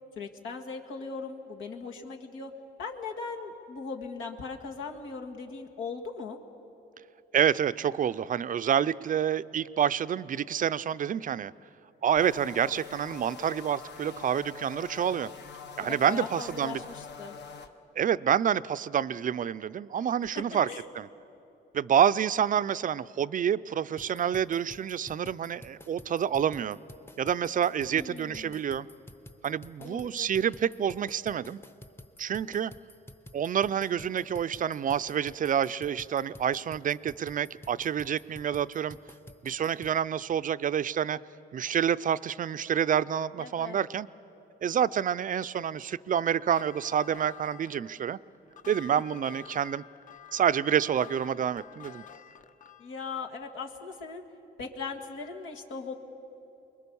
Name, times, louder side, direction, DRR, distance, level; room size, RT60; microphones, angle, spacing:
voice 1, 0.2-2.5 2.8-6.4 15.8-17.4 20.7-20.8 27.9-28.6 29.8-30.3 43.4-43.8 52.8-54.2 54.6-55.9, left 4 dB, 85° left, 2 dB, 1.9 m, -39 dB
voice 2, 7.3-11.5 12.0-15.3 15.8-16.8 18.0-20.7 20.9-21.1 21.7-26.8 27.2-28.9 29.4-31.6 32.2-32.7 33.3-39.0 39.4-41.2 41.5-44.1 44.6-48.2 48.7-49.8 50.3-52.0, right 8 dB, 40° right, 15 dB, 0.4 m, -28 dB
sound 1, 12.2-17.7, left 6 dB, 60° left, 1.2 m, -44 dB
sound 2, 24.0-40.0, left 1 dB, 10° left, 0.8 m, -50 dB
sound 3, 46.4-53.0, left 10 dB, 40° left, 0.8 m, -49 dB
24.5 x 21.5 x 7.0 m, 2.9 s
cardioid pair, 90°, 20 cm